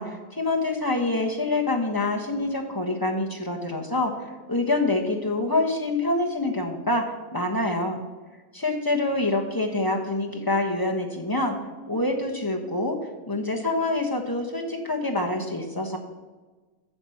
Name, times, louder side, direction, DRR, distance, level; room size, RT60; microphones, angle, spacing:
voice 1, 0.0-8.0 8.5-11.6 11.9-13.0 13.3-16.0, left 2 dB, 15° left, 1 dB, 1.2 m, -26 dB
9.1 x 7.1 x 7.1 m, 1.3 s
omnidirectional pair, 1.4 m